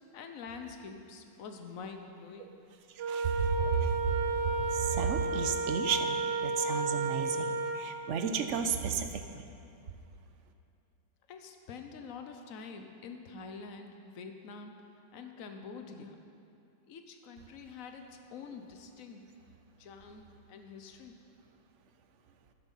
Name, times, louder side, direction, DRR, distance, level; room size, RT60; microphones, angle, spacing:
voice 1, 0.1-2.6 11.3-14.7 15.1-16.2 16.9-19.2 19.8-21.2, left 5 dB, 55° left, 5 dB, 1.2 m, -46 dB
Wind instrument woodwind instrument, 3.0-7.9, right 2 dB, 80° right, 1.6 m, -32 dB
voice 2, 3.1-4.1 4.6-9.4, right 6 dB, 55° right, 7 dB, 0.9 m, -32 dB
13.5 x 11.0 x 5.7 m, 2.7 s
omnidirectional pair, 2.0 m